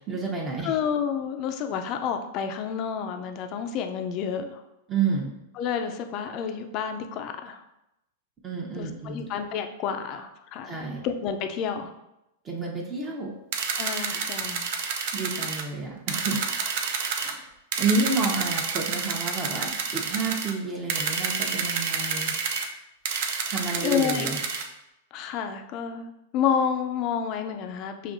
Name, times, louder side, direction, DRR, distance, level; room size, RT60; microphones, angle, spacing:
voice 1, 0.1-0.7 4.9-5.3 8.4-9.2 10.6-11.0 12.4-13.3 14.0-14.3 15.1-16.4 17.2-17.5 17.8-22.3 23.5-24.4, right 3 dB, 25° right, -2 dB, 0.8 m, -30 dB
voice 2, 0.6-4.6 5.6-7.6 8.7-10.8 11.0-11.9 13.7-14.6 23.7-24.3 25.1-28.1, left 7 dB, 45° left, 7 dB, 0.4 m, -29 dB
sound 1, 13.5-15.6 16.1-17.3 17.7-20.5 20.9-22.7 23.1-24.7, right 5 dB, 60° right, 0.5 m, -29 dB
5.9 x 2.7 x 2.6 m, 0.88 s
hypercardioid pair, 115°, 0 cm